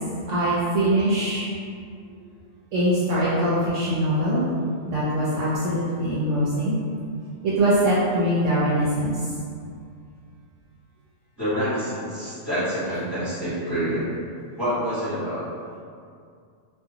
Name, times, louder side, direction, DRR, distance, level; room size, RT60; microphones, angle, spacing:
voice 1, 0.3-1.5 2.7-4.5 4.9-6.7 7.4-9.1, right 1 dB, 70° right, -8 dB, 0.9 m, -22 dB
voice 2, 11.4-14.1 14.6-15.4, equal, 15° right, -13 dB, 1.4 m, -27 dB
2.5 x 2.4 x 2.7 m, 2.3 s
omnidirectional pair, 1.4 m